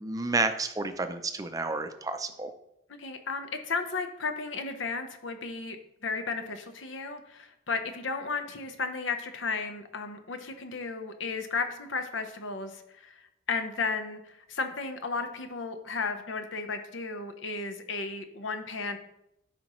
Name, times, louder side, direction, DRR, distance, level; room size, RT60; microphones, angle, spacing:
voice 1, 0.0-2.5, right 3 dB, 20° right, 8 dB, 0.5 m, -30 dB
voice 2, 3.0-5.8 6.0-13.2 13.5-19.0, left 4 dB, 75° left, 7 dB, 0.9 m, -34 dB
12.5 x 5.2 x 3.1 m, 0.83 s
head